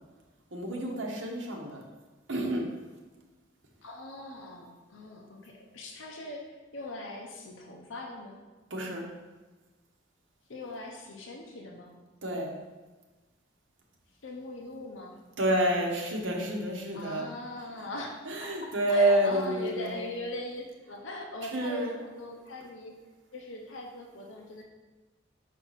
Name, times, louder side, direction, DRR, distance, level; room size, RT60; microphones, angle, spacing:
voice 1, 0.5-1.8 2.3-2.7 8.7-9.0 12.2-12.5 15.4-17.2 18.3-19.9 21.5-21.9, right 1 dB, 70° right, -1 dB, 1.0 m, -28 dB
voice 2, 3.8-8.4 10.5-11.9 14.2-15.2 16.9-18.2 18.4-18.5 18.9-23.0 23.3-24.6, left 1 dB, 85° left, 0 dB, 0.8 m, -41 dB
5.4 x 4.6 x 4.1 m, 1.2 s
head